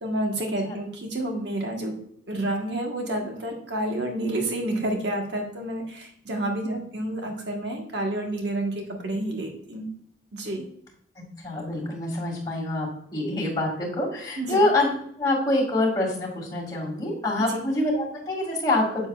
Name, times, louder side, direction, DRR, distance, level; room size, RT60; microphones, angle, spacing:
voice 1, 0.0-1.9 2.3-9.9 10.3-10.6 14.4-14.6 17.5-17.6, right 1 dB, 65° right, 1 dB, 1.3 m, -29 dB
voice 2, 11.4-12.9 13.1-19.1, left 2 dB, 20° left, -4 dB, 2.0 m, -25 dB
7.8 x 7.0 x 2.4 m, 0.66 s
head